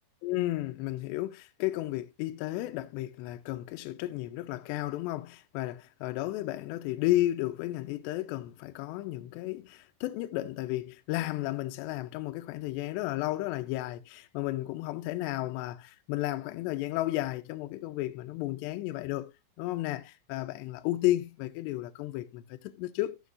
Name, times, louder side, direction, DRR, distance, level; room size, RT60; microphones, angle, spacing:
voice 1, 0.2-19.3 19.6-23.2, left 16 dB, 85° left, 2.5 m, -33 dB
14.0 x 7.1 x 2.5 m
omnidirectional pair, 5.6 m